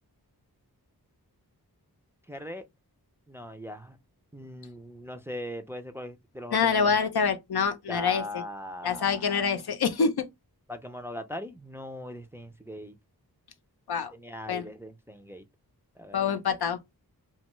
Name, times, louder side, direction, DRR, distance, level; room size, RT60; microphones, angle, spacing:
voice 1, 2.3-2.7 3.3-4.0 4.3-6.9 7.9-9.5 10.7-13.0 14.1-15.4 16.0-16.3, left 1 dB, 5° right, 0.4 m, -40 dB
voice 2, 6.5-8.4 8.8-10.3 13.9-14.1 14.5-14.7 16.1-16.8, left 6 dB, 80° left, 0.6 m, -26 dB
2.6 x 2.2 x 3.0 m
wide cardioid pair, 55°, 38 cm